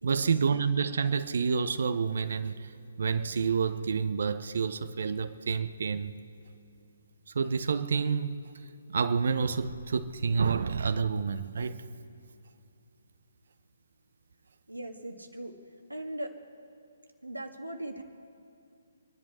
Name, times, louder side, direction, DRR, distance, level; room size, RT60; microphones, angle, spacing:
voice 1, 0.0-2.7 3.0-6.1 7.3-8.4 8.9-11.8, right 5 dB, 55° right, 12 dB, 0.8 m, -28 dB
voice 2, 14.7-15.6 15.9-16.4 17.2-18.0, right 1 dB, 90° right, 4 dB, 1.8 m, -39 dB
27.0 x 11.0 x 4.3 m, 2.6 s
figure-of-eight pair, 135°, 0 cm